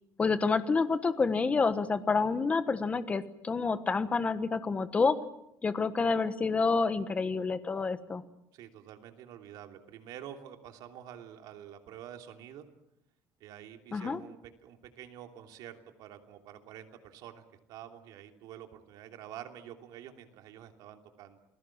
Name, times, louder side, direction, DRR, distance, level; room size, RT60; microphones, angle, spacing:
voice 1, 0.2-5.1 5.6-8.2 13.9-14.2, left 4 dB, 20° left, 12 dB, 1.3 m, -28 dB
voice 2, 8.5-12.7 13.4-21.4, right 10 dB, 75° right, 5 dB, 3.0 m, -48 dB
28.5 x 20.5 x 7.4 m, 0.79 s
cardioid pair, 165°, 7 cm